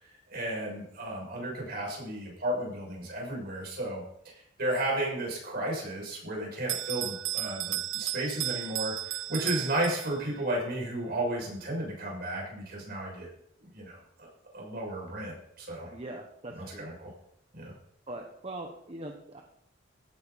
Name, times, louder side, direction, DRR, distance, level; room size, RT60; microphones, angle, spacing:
voice 1, 0.0-4.3 4.6-13.3 13.6-14.3 14.5-15.9 16.6-17.1 17.5-17.7, right 1 dB, 55° right, -2 dB, 6.5 m, -34 dB
Bell, 6.7-10.4, right 14 dB, 85° right, 0.5 m, -34 dB
voice 2, 15.9-16.9 18.1-19.4, right 1 dB, 30° right, 2 dB, 1.2 m, -41 dB
16.0 x 9.7 x 4.3 m, 0.73 s
head